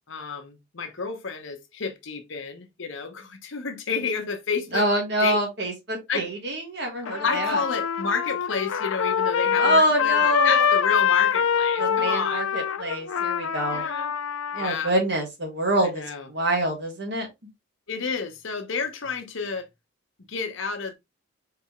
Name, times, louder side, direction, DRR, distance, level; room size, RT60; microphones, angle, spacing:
voice 1, 0.1-4.9 5.2-5.4 6.1-6.3 7.2-12.4 13.7-14.1 14.5-14.9 15.8-16.3 17.9-19.7 20.3-20.9, left 5 dB, 70° left, 0.9 m, -30 dB
voice 2, 4.7-7.6 9.6-10.7 11.8-13.9 14.5-16.0 16.3-17.3, right 1 dB, 55° right, 1.7 m, -25 dB
Trumpet, 7.1-14.7, left 8 dB, 90° left, 0.5 m, -24 dB
4.7 x 3.4 x 3.0 m
head